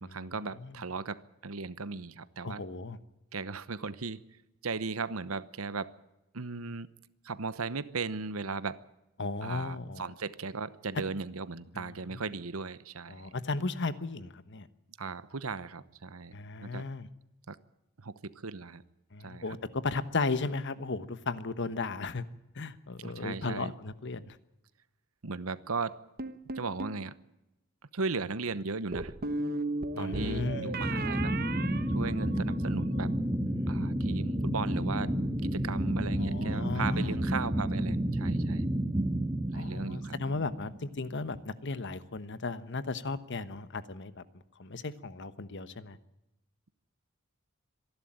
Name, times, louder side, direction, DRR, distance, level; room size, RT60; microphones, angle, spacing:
voice 1, 0.0-2.6 3.3-4.2 4.6-5.9 6.3-6.9 7.2-8.8 9.4-13.3 15.0-16.8 17.5-17.6 18.0-18.8 19.2-19.4 23.0-23.7 25.2-26.0 26.5-27.1 27.9-29.1 30.0-31.3 31.9-33.1 33.7-35.1 35.4-38.7 39.5-40.2, right 4 dB, 80° right, 16 dB, 1.0 m, -37 dB
voice 2, 2.4-3.0 9.2-10.0 11.7-12.2 13.1-14.7 16.3-17.1 19.1-22.2 22.5-24.4 29.9-30.7 33.6-33.9 36.2-37.2 39.5-44.2 44.6-46.0, left 3 dB, 55° left, 13 dB, 1.2 m, -35 dB
sound 1, 26.2-27.0 28.9-32.7, right 2 dB, 45° right, 1.2 m, -36 dB
sound 2, 30.1-41.0, right 1 dB, 20° right, 1.7 m, -31 dB
25.5 x 11.5 x 8.9 m, 0.93 s
head